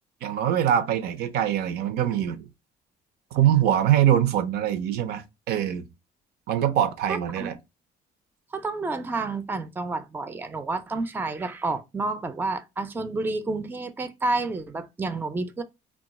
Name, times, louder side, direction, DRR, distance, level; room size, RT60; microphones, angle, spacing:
voice 1, 0.2-2.5 3.3-5.9 6.5-7.5, right 10 dB, 70° right, 0.5 m, -23 dB
voice 2, 7.1-7.5 8.5-15.6, right 3 dB, 10° right, 0.3 m, -30 dB
2.3 x 2.3 x 3.9 m
cardioid pair, 110°, 17 cm